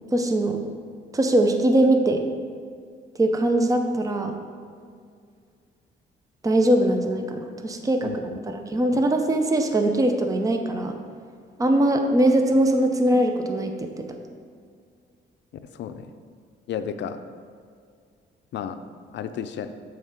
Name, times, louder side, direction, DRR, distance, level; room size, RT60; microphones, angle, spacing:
voice 1, 0.1-0.6 1.1-2.2 3.2-4.3 6.4-11.0 11.6-14.1, right 1 dB, 15° right, 5 dB, 0.6 m, -21 dB
voice 2, 15.7-16.1 16.7-17.2 18.5-18.8 19.1-19.7, left 8 dB, 65° left, 10 dB, 0.5 m, -32 dB
7.2 x 3.2 x 5.7 m, 2.1 s
cardioid pair, 90°, 20 cm